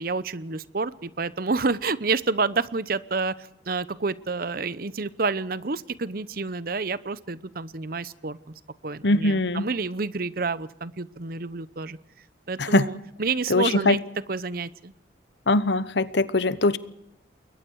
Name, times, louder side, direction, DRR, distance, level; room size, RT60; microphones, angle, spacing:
voice 1, 0.0-8.5 8.8-12.0 12.5-14.0 14.3-14.9, right 4 dB, 55° right, 17 dB, 0.8 m, -29 dB
voice 2, 9.0-9.7 12.6-12.9 13.5-14.0 15.5-16.8, left 2 dB, 70° left, 16 dB, 1.0 m, -21 dB
29.0 x 22.0 x 4.8 m, 0.82 s
head